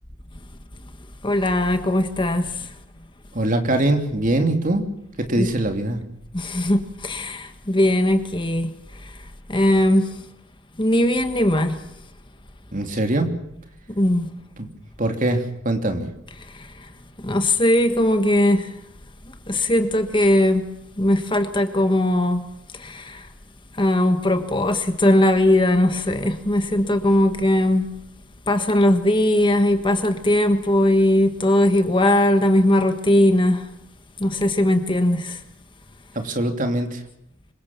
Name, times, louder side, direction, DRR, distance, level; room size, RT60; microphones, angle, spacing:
voice 1, 1.2-2.7 5.4-5.5 6.3-8.7 9.0-9.1 9.5-10.1 10.8-11.8 14.0-14.3 16.4-16.9 17.2-18.7 19.5-20.6 21.0-22.4 22.7-23.3 23.8-27.9 28.5-33.6 34.2-35.4, left 1 dB, 20° left, 1.5 m, -19 dB
voice 2, 3.3-4.8 5.3-6.0 12.7-13.3 14.6-14.7 15.0-16.1 36.1-37.0, right 1 dB, 40° right, 3.0 m, -22 dB
26.5 x 23.0 x 7.4 m
head